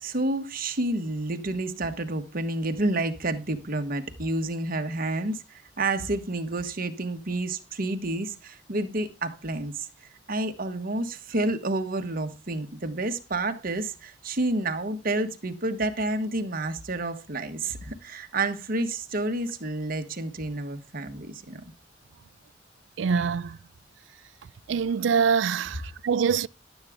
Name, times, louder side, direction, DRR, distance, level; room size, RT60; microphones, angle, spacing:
voice 1, 0.0-9.9 10.3-21.6, right 2 dB, 50° right, 1.3 m, -29 dB
voice 2, 23.0-23.6 24.7-26.5, right 6 dB, 75° right, 0.4 m, -24 dB
11.5 x 8.1 x 3.6 m
head